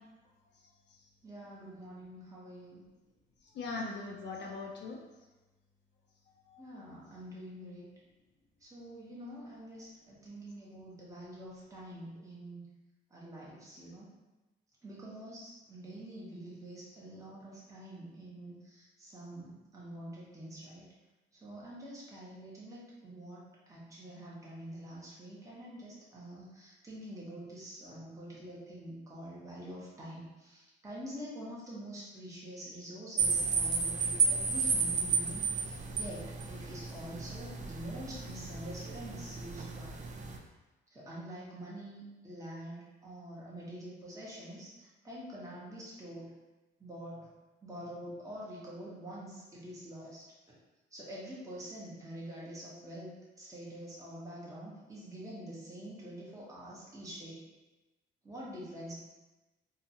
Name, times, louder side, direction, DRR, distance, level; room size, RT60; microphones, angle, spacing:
voice 1, 0.6-1.1 3.4-5.0 6.5-7.0, left 3 dB, 65° left, 0 dB, 0.5 m, -42 dB
voice 2, 1.2-2.8 6.6-7.9 8.6-12.6 13.1-14.1 14.8-20.8 21.3-40.0 40.9-46.3 46.8-47.3 47.6-50.2 50.9-57.4 58.2-58.9, right 1 dB, 15° right, -7 dB, 0.9 m, -46 dB
sound 1, 33.2-40.4, right 5 dB, 40° right, 0.4 m, -33 dB
2.8 x 2.3 x 2.7 m, 1.1 s
cardioid pair, 90°, 20 cm